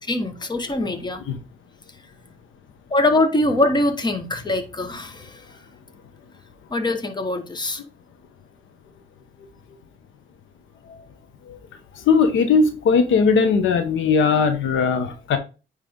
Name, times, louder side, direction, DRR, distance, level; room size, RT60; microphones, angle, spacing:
voice 1, 0.1-1.2 2.9-5.4 6.7-7.8, left 2 dB, 20° left, 1.3 m, -23 dB
voice 2, 12.0-15.4, left 5 dB, 75° left, 1.1 m, -19 dB
9.4 x 3.3 x 3.7 m
cardioid pair, 90°, 20 cm